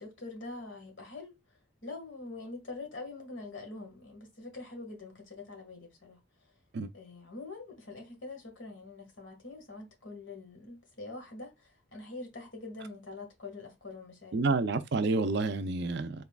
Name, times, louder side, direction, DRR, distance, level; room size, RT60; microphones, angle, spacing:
voice 1, 0.0-1.3 1.8-6.2 6.9-14.4, left 3 dB, 70° left, 1.6 m, -44 dB
voice 2, 14.3-16.2, right 3 dB, 55° right, 0.5 m, -29 dB
4.0 x 3.6 x 2.2 m
head